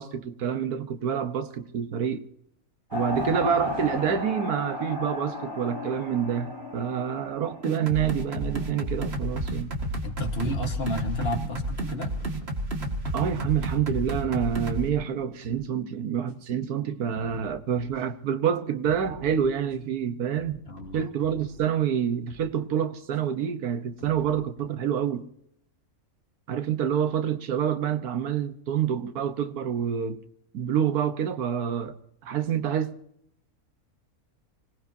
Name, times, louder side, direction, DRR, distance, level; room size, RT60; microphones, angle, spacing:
voice 1, 0.0-2.2 2.9-9.7 13.1-20.7 20.9-25.2 26.5-30.2 30.5-32.0 32.2-33.0, right 8 dB, 90° right, 1.6 m, -27 dB
sound 1, 2.9-8.8, left 2 dB, 15° right, 5.2 m, -35 dB
sound 2, 7.6-14.9, right 1 dB, 45° right, 2.3 m, -31 dB
voice 2, 10.0-12.1 20.7-21.0, left 1 dB, 45° left, 1.7 m, -32 dB
sound 3, 10.3-11.2 12.0-13.0 13.5-14.8 15.2-15.6 16.3-16.4 17.1-18.0 18.8-19.9 20.3-21.7 22.3-22.5 23.1-23.2 24.0-24.7, right 2 dB, 70° right, 5.8 m, -48 dB
25.5 x 18.5 x 2.7 m
omnidirectional pair, 1.6 m